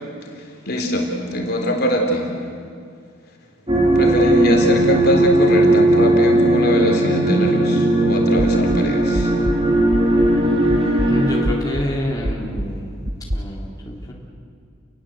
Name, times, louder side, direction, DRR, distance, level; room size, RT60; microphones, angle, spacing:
voice 1, 0.7-2.3 4.0-9.3, equal, 50° left, 1 dB, 3.8 m, -22 dB
sound 1, 3.7-11.4, right 1 dB, 25° right, 3.7 m, -17 dB
sound 2, 8.4-10.4 10.7-13.4, equal, 60° right, 1.7 m, -27 dB
voice 2, 11.1-12.9 13.3-14.1, equal, 20° left, -4 dB, 3.8 m, -27 dB
30.0 x 22.5 x 8.1 m, 2.3 s
head